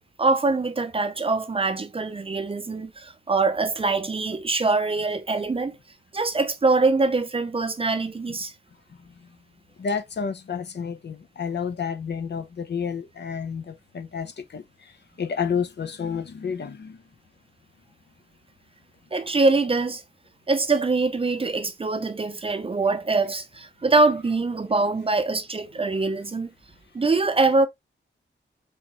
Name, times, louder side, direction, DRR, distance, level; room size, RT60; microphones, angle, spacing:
voice 1, 0.0-5.8 6.1-8.5 19.1-20.0 20.5-26.5 26.9-27.7, right 3 dB, 25° right, 0.5 m, -23 dB
voice 2, 9.8-14.9 15.2-17.0, left 6 dB, 55° left, 0.7 m, -30 dB
4.6 x 3.5 x 3.0 m
wide cardioid pair, 155°, 20 cm